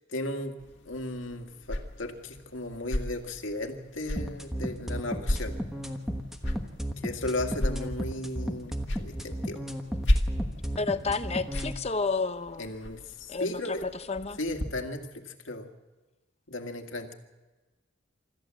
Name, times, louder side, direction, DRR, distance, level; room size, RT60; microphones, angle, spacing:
voice 1, 0.1-0.6 0.9-5.5 7.0-9.6 12.6-13.8 14.4-15.7 16.5-17.1, left 1 dB, 80° left, 4 dB, 2.1 m, -35 dB
sound 1, 0.6-14.7, left 1 dB, 65° left, 1.8 m, -35 dB
sound 2, 4.2-11.7, equal, ahead, 1.2 m, -34 dB
voice 2, 10.8-12.7 13.3-14.4, left 4 dB, 30° left, 11 dB, 0.7 m, -31 dB
25.0 x 13.5 x 7.7 m, 1.2 s
head